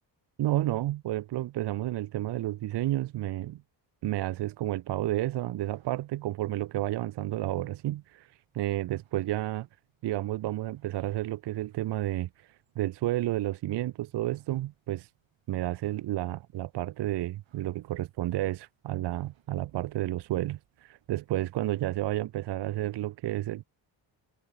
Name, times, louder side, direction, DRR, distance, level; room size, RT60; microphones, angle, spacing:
voice 1, 0.4-3.6 4.0-8.3 8.5-9.7 10.0-12.3 12.8-15.1 15.5-23.6, right 15 dB, 65° right, 0.6 m, -31 dB
sound 1, 5.1-22.2, right 11 dB, 85° right, 7.4 m, -72 dB
cardioid pair, 85°, 45 cm